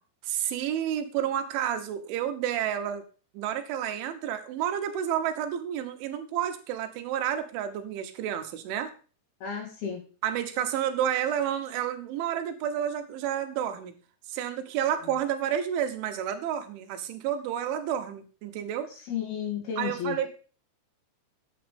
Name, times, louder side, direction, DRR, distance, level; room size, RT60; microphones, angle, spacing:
voice 1, 0.2-3.0 3.4-8.9 10.2-13.9 14.3-18.9 19.8-20.3, right 10 dB, 90° right, 7 dB, 3.7 m, -30 dB
voice 2, 9.4-10.0 15.0-15.1 18.9-20.2, left 8 dB, 60° left, 2 dB, 4.6 m, -33 dB
10.0 x 8.6 x 5.2 m, 0.37 s
omnidirectional pair, 5.3 m